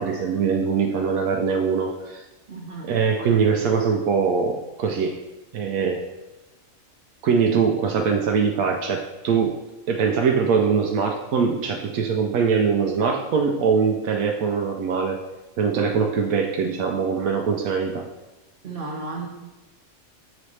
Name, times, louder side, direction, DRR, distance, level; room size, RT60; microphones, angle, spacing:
voice 1, 0.0-2.2 2.9-5.2 5.5-6.1 7.2-9.6 9.9-15.2 15.6-18.1, right 6 dB, 80° right, 2 dB, 1.0 m, -22 dB
voice 2, 2.5-2.9 3.2-3.3 18.6-19.3, right 3 dB, 40° right, -1 dB, 1.4 m, -33 dB
7.7 x 4.1 x 3.2 m, 1.1 s
omnidirectional pair, 1.5 m